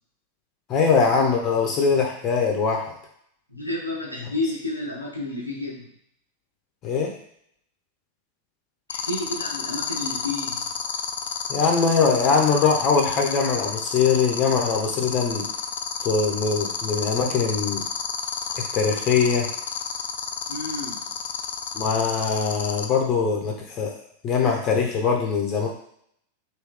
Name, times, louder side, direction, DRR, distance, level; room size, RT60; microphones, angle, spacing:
voice 1, 0.7-2.9 6.8-7.1 11.5-15.5 16.0-17.8 18.6-19.5 21.7-24.0 24.2-25.7, left 5 dB, 30° left, 1 dB, 0.8 m, -22 dB
voice 2, 3.5-5.9 8.9-10.6 20.5-21.1, left 2 dB, 90° left, -3 dB, 0.8 m, -31 dB
sound 1, 8.9-22.8, left 7 dB, 60° left, 0.4 m, -29 dB
3.1 x 2.7 x 3.6 m, 0.68 s
figure-of-eight pair, 90°, 0 cm